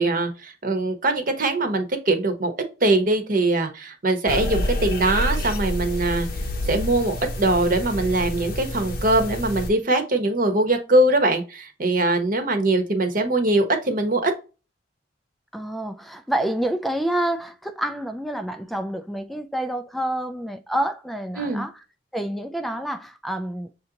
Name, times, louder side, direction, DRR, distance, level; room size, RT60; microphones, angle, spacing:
voice 1, 0.0-2.5 2.8-6.3 6.7-14.3 21.4-21.7, right 2 dB, 50° right, 1.0 m, -22 dB
sound 1, 4.3-9.7, left 1 dB, 55° left, 0.7 m, -28 dB
voice 2, 15.5-21.7 22.1-23.7, right 1 dB, ahead, 0.3 m, -28 dB
6.3 x 2.6 x 2.8 m
head